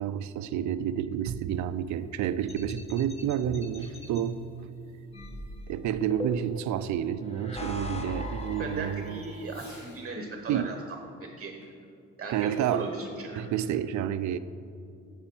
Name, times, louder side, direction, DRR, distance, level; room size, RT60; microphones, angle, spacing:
voice 1, 0.0-4.4 5.7-9.2 10.5-10.7 12.3-12.9 13.4-14.4, right 10 dB, 70° right, 14 dB, 0.5 m, -30 dB
Fireworks, 1.5-10.1 11.6-11.7 12.2-13.1, left 2 dB, 65° left, 2.5 m, -62 dB
sound 1, 2.5-4.2 5.1-6.7 7.3-9.5, left 1 dB, 20° left, 1.1 m, -39 dB
sound 2, 3.8-5.5, right 5 dB, 50° left, 2.5 m, -45 dB
voice 2, 8.6-10.8 11.2-11.5 12.2-13.5, right 3 dB, 30° right, 3 dB, 0.9 m, -37 dB
9.8 x 6.8 x 4.4 m, 2.5 s
cardioid pair, 90°, 30 cm